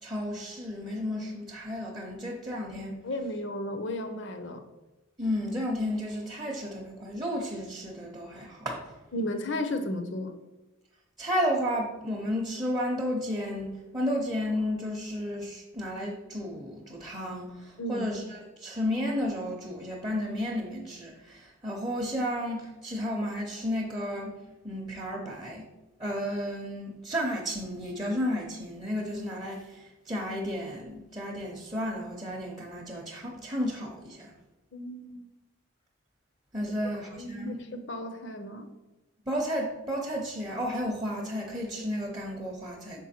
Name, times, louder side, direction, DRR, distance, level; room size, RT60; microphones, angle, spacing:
voice 1, 0.0-3.0 5.2-8.8 11.2-24.3 24.6-25.7 26.0-34.3 36.5-37.6 39.3-43.0, equal, 20° right, -3 dB, 0.7 m, -32 dB
voice 2, 3.0-4.6 9.1-10.4 17.8-18.1 34.7-35.3 37.1-38.7, left 1 dB, 60° left, 7 dB, 0.6 m, -34 dB
6.1 x 4.4 x 4.3 m, 1.1 s
head